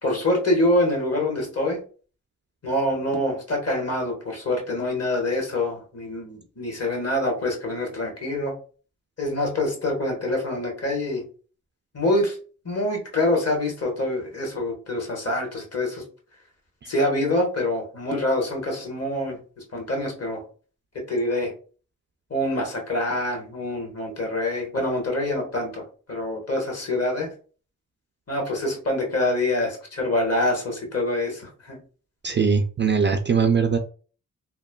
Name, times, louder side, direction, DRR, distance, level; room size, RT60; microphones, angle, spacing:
voice 1, 0.0-1.8 2.6-8.5 9.2-11.2 11.9-12.3 12.6-16.0 16.9-19.4 19.7-20.4 20.9-21.5 22.3-25.8 26.1-27.3 28.3-31.8, left 1 dB, 45° left, 1 dB, 1.3 m, -25 dB
voice 2, 32.2-33.8, right 6 dB, 35° right, 7 dB, 0.4 m, -21 dB
3.0 x 2.1 x 2.2 m, 0.38 s
cardioid pair, 45°, 34 cm